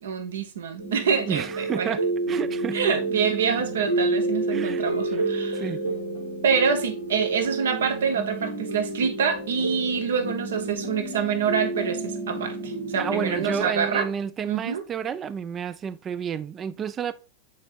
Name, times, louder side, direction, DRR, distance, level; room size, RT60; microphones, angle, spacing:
voice 1, 0.0-2.0 2.7-5.6 6.4-14.1 14.4-14.8, right 6 dB, 65° right, 1.0 m, -26 dB
sound 1, 0.8-13.7, right 2 dB, 85° right, 2.0 m, -30 dB
voice 2, 1.3-2.8 4.5-4.9 5.1-5.3 5.5-5.8 12.9-17.1, right 7 dB, 25° right, 0.4 m, -30 dB
8.4 x 4.5 x 2.5 m
figure-of-eight pair, 90°, 0 cm